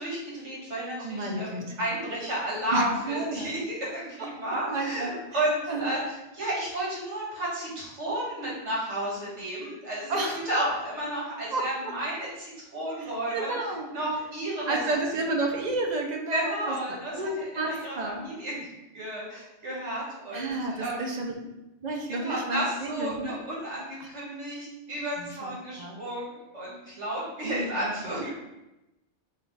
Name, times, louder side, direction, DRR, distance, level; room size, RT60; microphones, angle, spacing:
voice 1, 0.0-14.8 16.3-21.0 22.1-28.3, right 1 dB, 75° right, -6 dB, 1.8 m, -32 dB
voice 2, 1.0-1.7 2.7-3.5 4.2-5.4 5.7-6.0 10.1-10.4 11.5-11.9 13.0-13.9 14.7-18.3 20.3-21.4 21.8-23.4 24.0-24.1 25.2-26.0 27.4-28.2, right 2 dB, 45° right, 1 dB, 0.6 m, -32 dB
5.1 x 2.3 x 3.9 m, 0.96 s
omnidirectional pair, 1.2 m